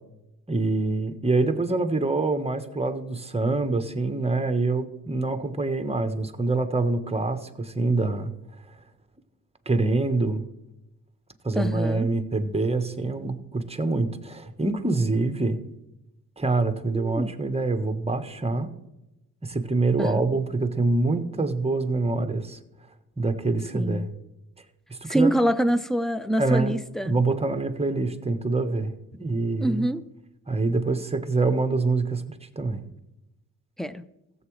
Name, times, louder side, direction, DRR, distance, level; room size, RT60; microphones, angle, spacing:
voice 1, 0.5-8.3 9.6-10.4 11.4-15.6 16.4-18.7 19.4-22.6 23.2-24.1 24.9-25.3 26.4-26.8 27.0-28.9 29.2-29.9 30.5-32.8, right 3 dB, 15° right, 8 dB, 1.2 m, -25 dB
voice 2, 11.5-12.1 16.9-17.3 20.0-20.3 23.7-24.1 25.1-27.2 29.6-30.0 33.8-34.0, equal, ahead, 12 dB, 0.6 m, -25 dB
15.5 x 8.0 x 3.2 m, 0.93 s
cardioid pair, 65°, 36 cm